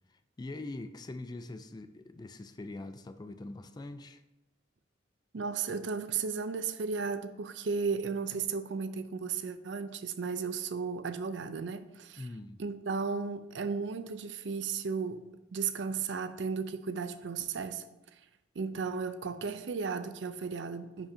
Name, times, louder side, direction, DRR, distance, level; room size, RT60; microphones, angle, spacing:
voice 1, 0.1-4.2 12.2-12.6, left 2 dB, 20° left, 0.3 m, -43 dB
voice 2, 5.3-12.3 12.6-15.2 15.5-17.8 18.6-21.1, right 5 dB, 65° right, 0.5 m, -34 dB
9.9 x 5.2 x 2.7 m
head